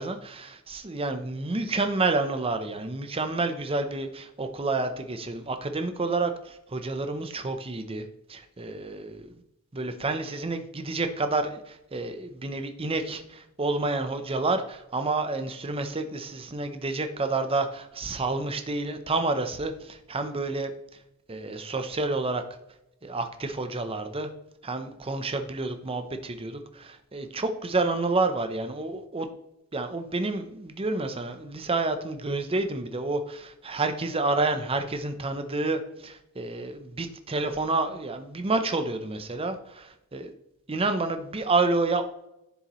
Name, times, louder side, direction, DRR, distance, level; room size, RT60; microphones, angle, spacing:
voice 1, 0.0-9.3 9.7-20.7 21.3-22.4 23.0-24.3 24.6-29.3 29.7-40.3 40.7-42.0, right 3 dB, 25° right, 8 dB, 0.7 m, -29 dB
10.5 x 7.0 x 3.1 m, 0.86 s
head